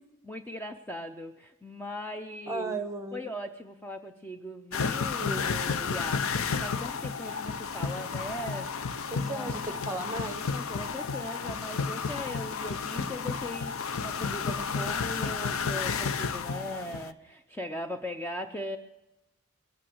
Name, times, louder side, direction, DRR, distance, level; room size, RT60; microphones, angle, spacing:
voice 1, 0.3-2.8 3.1-8.7 9.1-9.8 10.5-18.8, left 1 dB, 10° left, 5 dB, 0.6 m, -39 dB
voice 2, 2.5-3.3 5.2-5.6 9.1-10.5, right 2 dB, 15° right, 8 dB, 1.1 m, -36 dB
sound 1, 4.7-17.1, left 5 dB, 85° left, 0.6 m, -32 dB
Wind instrument woodwind instrument, 6.4-15.5, right 1 dB, 35° left, 4.0 m, -53 dB
21.5 x 8.9 x 6.2 m, 0.94 s
head